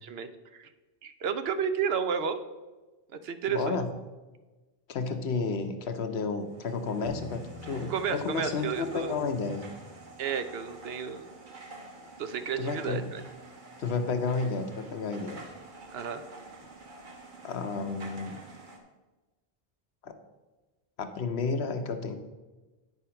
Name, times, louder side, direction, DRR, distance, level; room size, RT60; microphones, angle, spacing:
voice 1, 0.0-0.7 1.0-2.4 3.1-3.8 7.9-9.1 10.2-11.3 12.2-13.2 15.9-16.2, right 7 dB, 75° right, 10 dB, 0.9 m, -32 dB
voice 2, 3.5-3.9 4.9-9.7 12.6-13.1 13.8-15.4 17.4-18.4 20.0-20.2 21.0-22.1, left 4 dB, 85° left, 7 dB, 1.1 m, -31 dB
sound 1, 6.4-18.8, right 3 dB, 50° right, 1.3 m, -48 dB
Bass guitar, 7.1-13.3, left 6 dB, 20° left, 2.0 m, -53 dB
9.4 x 5.1 x 5.7 m, 1.2 s
omnidirectional pair, 1.0 m